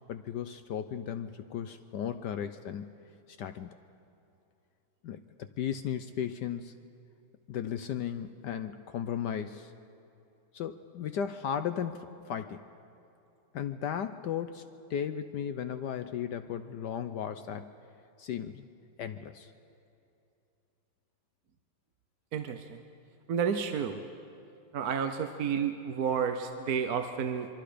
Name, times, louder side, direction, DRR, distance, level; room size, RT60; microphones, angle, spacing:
voice 1, 0.1-2.9 3.4-3.7 5.0-6.7 7.5-9.7 10.5-12.6 13.5-14.6 14.9-17.7 18.2-18.6 19.0-19.5, left 8 dB, 70° left, 9 dB, 1.0 m, -35 dB
voice 2, 22.3-22.8 23.3-24.0 24.7-27.5, right 7 dB, 60° right, 7 dB, 1.0 m, -31 dB
26.5 x 24.0 x 5.1 m, 2.7 s
omnidirectional pair, 2.4 m